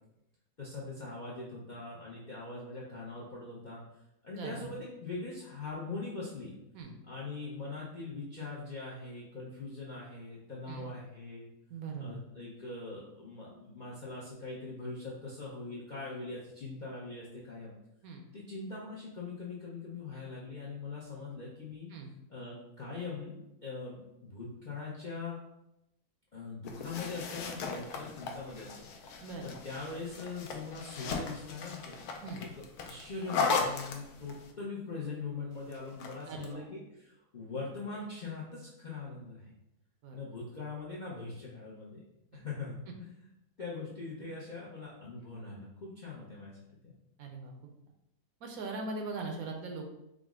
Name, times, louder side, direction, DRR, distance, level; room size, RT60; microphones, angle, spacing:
voice 1, 0.6-3.8 4.2-6.5 7.1-11.5 12.0-17.7 18.3-21.9 22.3-25.4 26.3-28.9 29.4-32.0 32.4-39.5 40.1-42.0 42.3-43.3 43.6-46.6 46.8-46.9, left 3 dB, 55° left, -5 dB, 0.5 m, -42 dB
voice 2, 4.3-4.7 6.7-6.9 10.7-10.9 11.7-12.2 18.0-18.2 21.9-22.1 29.2-29.6 32.2-32.4 36.3-36.7 40.0-40.2 42.3-42.4 47.2-47.5 48.4-49.9, right 3 dB, 70° right, 2 dB, 1.0 m, -40 dB
sound 1, 26.6-34.5 35.7-36.5, left 4 dB, 75° left, 1.0 m, -37 dB
4.9 x 2.0 x 3.5 m, 0.87 s
omnidirectional pair, 1.7 m